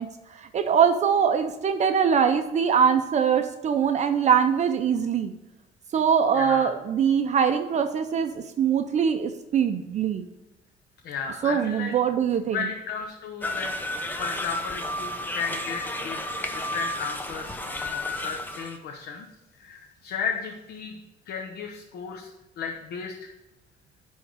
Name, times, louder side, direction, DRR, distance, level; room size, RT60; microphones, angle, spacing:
voice 1, 0.0-5.3 5.9-10.2 11.4-12.6, right 7 dB, 45° right, 7 dB, 0.6 m, -23 dB
voice 2, 6.3-6.7 11.0-11.9 12.5-13.7 14.2-16.2 16.5-19.2 19.6-21.0 21.3-23.3, left 6 dB, 75° left, 2 dB, 1.0 m, -34 dB
sound 1, 13.4-18.8, left 1 dB, 10° left, 0.9 m, -32 dB
10.5 x 3.6 x 6.2 m, 1.0 s
cardioid pair, 110°, 17 cm